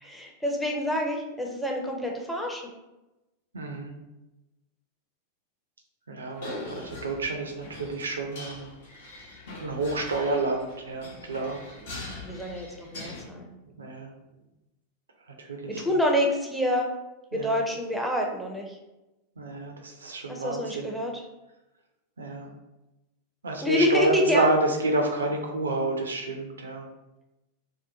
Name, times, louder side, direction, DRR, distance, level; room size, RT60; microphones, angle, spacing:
voice 1, 0.0-2.6 12.1-13.5 15.8-16.9 17.3-18.8 20.3-21.1 23.6-24.5, left 1 dB, ahead, 0 dB, 0.5 m, -27 dB
voice 2, 3.5-3.9 6.1-8.7 9.6-11.6 13.8-14.1 15.3-15.8 17.3-17.6 19.4-20.9 22.2-22.5 23.4-26.9, right 2 dB, 70° right, 2 dB, 0.3 m, -29 dB
sound 1, 6.3-13.2, left 2 dB, 60° left, 0.7 m, -42 dB
2.7 x 2.2 x 2.5 m, 0.99 s
figure-of-eight pair, 90°, 0 cm